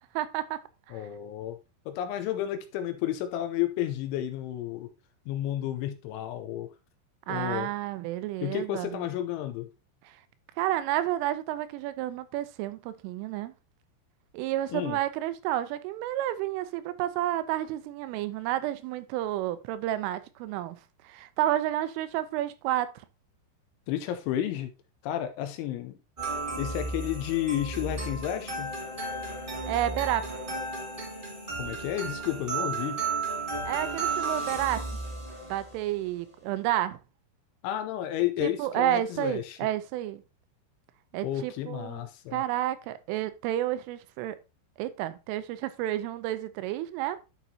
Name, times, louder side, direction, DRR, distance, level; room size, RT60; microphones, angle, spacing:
voice 1, 0.1-0.6 0.9-1.1 7.3-8.9 10.1-10.2 10.6-13.5 14.3-20.8 21.0-22.9 29.7-30.3 33.6-34.8 35.5-37.0 38.4-40.2 41.1-44.4 44.8-47.2, right 13 dB, 85° right, 3.2 m, -30 dB
voice 2, 0.9-1.6 1.9-4.9 5.3-6.7 7.3-7.7 8.4-9.7 14.7-15.0 23.9-24.7 25.0-26.0 26.6-28.7 31.6-33.0 37.6-39.6 41.2-42.4, left 12 dB, 80° left, 2.9 m, -31 dB
sound 1, 26.2-35.8, right 3 dB, 35° right, 0.7 m, -34 dB
11.0 x 6.0 x 2.8 m
omnidirectional pair, 5.8 m